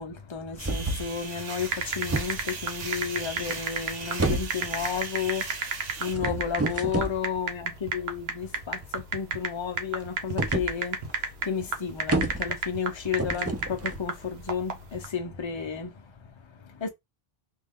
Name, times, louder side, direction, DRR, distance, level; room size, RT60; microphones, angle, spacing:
voice 1, 0.0-16.9, left 7 dB, 30° left, 0.7 m, -33 dB
sound 1, 0.5-1.1 1.6-2.7 3.3-3.9 4.2-5.0 6.0-7.2 10.4-10.7 11.1-11.2 11.4-11.5 11.8-12.7 13.2-14.4, right 2 dB, 20° right, 0.4 m, -30 dB
sound 2, 0.6-6.2, right 4 dB, 45° right, 0.8 m, -38 dB
sound 3, 1.6-15.1, right 5 dB, 85° right, 1.1 m, -32 dB
3.3 x 2.4 x 3.6 m
omnidirectional pair, 1.0 m